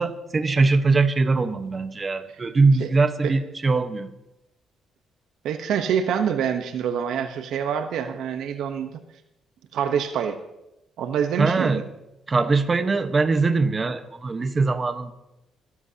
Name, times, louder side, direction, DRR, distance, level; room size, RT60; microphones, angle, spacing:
voice 1, 0.0-4.1 11.4-11.8 12.3-15.1, right 3 dB, 30° right, 8 dB, 1.2 m, -22 dB
voice 2, 5.4-8.9 9.7-10.4 11.0-11.8, right 8 dB, 80° right, 7 dB, 1.0 m, -26 dB
25.0 x 13.5 x 2.9 m, 0.91 s
cardioid pair, 90°, 0 cm